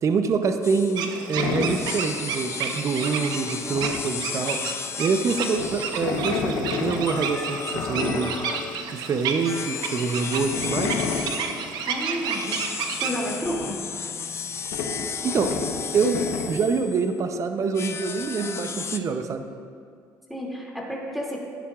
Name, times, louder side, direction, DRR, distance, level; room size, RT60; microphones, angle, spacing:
voice 1, 0.0-8.3 8.9-10.9 15.2-15.5 15.9-19.4, right 5 dB, 45° right, 7 dB, 0.7 m, -26 dB
sound 1, 0.6-1.0 1.6-6.4 7.1-8.9 9.4-11.7 12.3-17.1 17.7-19.0, left 6 dB, 40° left, 0.6 m, -34 dB
sound 2, 1.0-13.1, right 6 dB, 75° right, 0.9 m, -32 dB
sound 3, 1.3-2.0 2.3-2.8 3.1-3.2 3.4-4.9 5.2-8.9 9.3-9.4 9.7-11.5 11.9-12.0 12.4-12.6 12.9-16.5, left 5 dB, 85° left, 1.0 m, -31 dB
voice 2, 11.9-13.8 20.3-21.4, equal, ahead, -3 dB, 2.6 m, -31 dB
15.0 x 10.0 x 2.5 m, 2.2 s
supercardioid pair, 90°, 7 cm